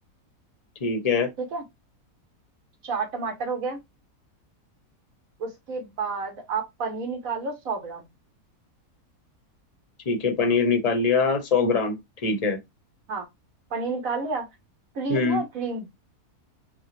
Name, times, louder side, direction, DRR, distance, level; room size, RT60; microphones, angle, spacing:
voice 1, 0.8-1.3 10.1-12.6 15.1-15.4, left 4 dB, 30° left, 0.8 m, -23 dB
voice 2, 2.8-3.8 5.4-8.1 13.1-13.2 13.7-14.5 14.9-15.9, right 4 dB, 60° right, 1.7 m, -30 dB
5.4 x 2.1 x 3.2 m
omnidirectional pair, 1.6 m